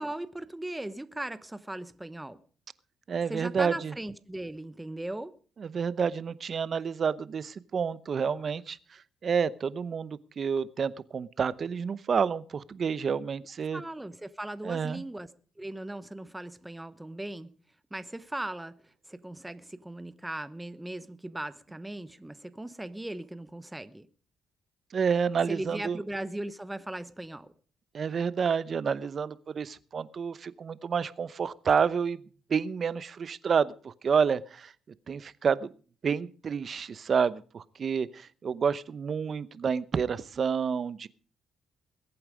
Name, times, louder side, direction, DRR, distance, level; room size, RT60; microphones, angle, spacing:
voice 1, 0.0-2.4 3.3-5.4 13.7-15.3 15.6-17.5 17.9-24.1 25.5-27.5, right 1 dB, 10° right, 0.9 m, -38 dB
voice 2, 3.1-3.9 5.6-8.8 9.2-13.8 14.6-15.0 24.9-26.0 27.9-32.2 32.5-34.7 35.1-35.7 36.0-41.1, right 6 dB, 45° right, 0.8 m, -29 dB
21.5 x 8.8 x 4.9 m
cardioid pair, 90°, 0 cm